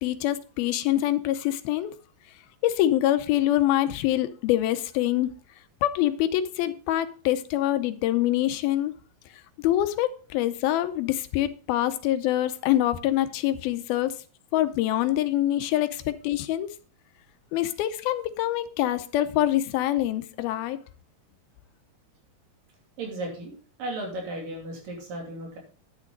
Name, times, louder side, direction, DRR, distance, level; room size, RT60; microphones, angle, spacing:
voice 1, 0.0-1.9 2.6-5.3 5.8-8.9 9.6-14.1 14.5-16.7 17.5-20.8, left 13 dB, 85° left, 2.7 m, -25 dB
voice 2, 23.0-25.6, right 2 dB, 65° right, 4.5 m, -35 dB
10.5 x 9.1 x 3.9 m
omnidirectional pair, 4.2 m